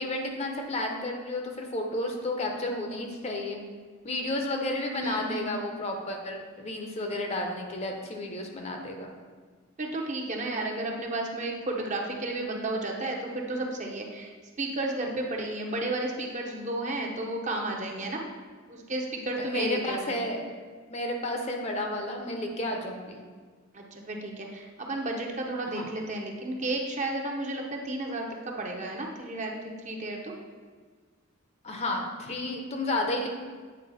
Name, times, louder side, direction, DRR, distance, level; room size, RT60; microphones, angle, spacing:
voice 1, 0.0-3.6 4.0-9.1 19.4-20.6 20.9-23.2 25.7-25.9 31.6-33.3, left 1 dB, 30° left, 3 dB, 0.7 m, -32 dB
voice 2, 5.0-5.6 9.8-14.3 14.6-18.2 18.7-20.2 23.7-29.5 29.8-30.3, right 2 dB, 35° right, 1 dB, 0.8 m, -32 dB
8.5 x 4.2 x 4.1 m, 1.5 s
head